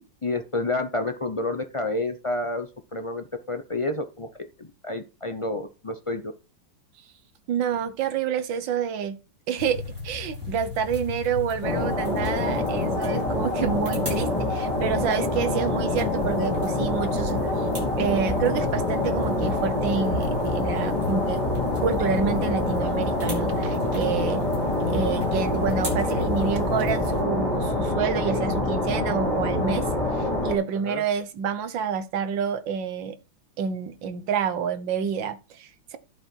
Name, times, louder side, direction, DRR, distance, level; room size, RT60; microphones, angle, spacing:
voice 1, 0.0-4.3 4.6-6.3 30.8-31.0, left 2 dB, 50° left, 0.3 m, -29 dB
voice 2, 7.5-9.2 9.5-17.5 18.0-21.4 21.8-24.4 24.9-29.9 30.2-33.2 33.6-36.0, right 7 dB, 75° right, 1.8 m, -28 dB
sound 1, 9.6-27.2, left 4 dB, 45° right, 7.1 m, -36 dB
sound 2, 11.6-30.5, left 2 dB, 15° left, 4.0 m, -26 dB
11.0 x 7.7 x 4.5 m
omnidirectional pair, 2.1 m